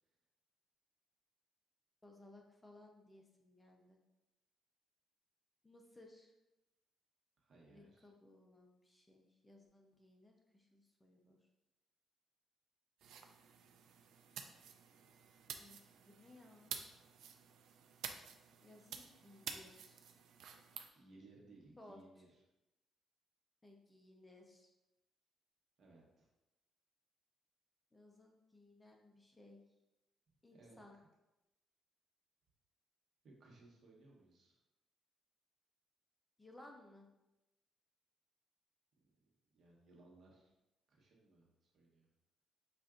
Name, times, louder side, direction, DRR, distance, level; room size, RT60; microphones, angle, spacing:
voice 1, 2.0-4.0 5.6-6.3 7.7-11.4 15.6-15.8 16.0-16.8 18.6-20.1 21.8-22.0 23.6-24.7 27.9-29.6 30.4-30.9 36.4-37.1, left 1 dB, 15° left, 1 dB, 0.6 m, -61 dB
voice 2, 7.4-8.1 20.9-22.4 25.8-26.3 30.5-30.8 33.2-34.6 39.5-40.5 40.9-42.0, right 2 dB, 60° right, -2 dB, 1.1 m, -63 dB
sound 1, 13.0-20.9, right 7 dB, 80° right, 0.3 m, -51 dB
5.7 x 2.5 x 2.5 m, 0.97 s
cardioid pair, 90°, 0 cm